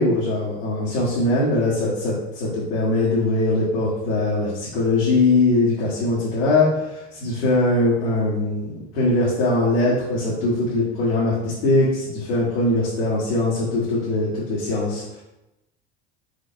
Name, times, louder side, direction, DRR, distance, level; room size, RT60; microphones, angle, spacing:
voice 1, 0.0-8.6 8.9-15.0, left 2 dB, 85° left, -8 dB, 1.5 m, -21 dB
5.0 x 4.2 x 2.5 m, 0.94 s
supercardioid pair, 90°, 32 cm